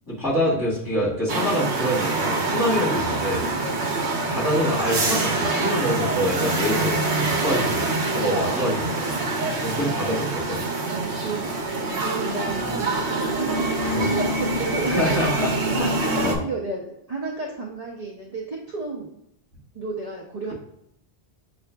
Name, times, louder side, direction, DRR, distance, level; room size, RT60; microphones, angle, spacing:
voice 1, 0.1-3.5 4.3-7.9 8.1-9.1 9.6-10.6 13.9-14.0 14.8-15.5 15.8-16.4, equal, 20° left, -7 dB, 1.7 m, -26 dB
sound 1, 1.3-16.4, right 2 dB, 80° right, 1.0 m, -25 dB
voice 2, 10.9-11.6 11.9-15.3 16.0-19.2 19.7-20.5, right 3 dB, 45° right, -2 dB, 0.6 m, -31 dB
6.8 x 2.5 x 2.2 m, 0.77 s
omnidirectional pair, 1.1 m